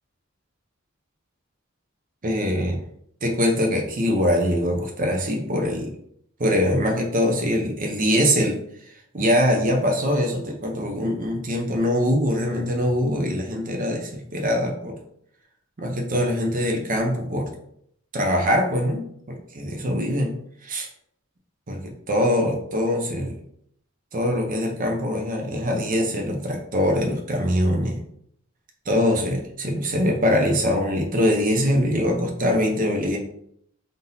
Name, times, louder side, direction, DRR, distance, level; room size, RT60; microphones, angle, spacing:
voice 1, 2.2-2.8 3.2-5.9 6.4-8.6 9.1-15.0 15.8-17.5 18.1-20.3 20.6-20.9 21.7-21.8 22.1-23.4 24.1-28.0 28.9-33.2, equal, 40° right, 2 dB, 0.7 m, -23 dB
3.7 x 2.7 x 3.9 m, 0.69 s
head